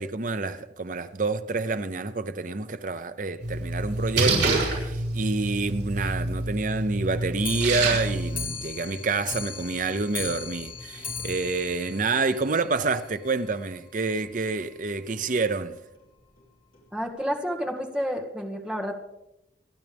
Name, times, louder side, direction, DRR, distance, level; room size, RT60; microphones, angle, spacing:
voice 1, 0.0-15.8, right 3 dB, 45° right, 0.7 m, -28 dB
Splash splatter, 3.4-8.4, right 2 dB, 80° right, 6.7 m, -27 dB
Clock, 7.4-12.9 13.2-13.3 13.6-13.7 14.0-14.1 14.4-14.5 15.2-15.3 16.0-16.1 16.7-16.8, left 5 dB, 50° left, 3.3 m, -37 dB
voice 2, 16.9-19.0, equal, 5° right, 1.8 m, -30 dB
28.0 x 10.5 x 3.5 m
head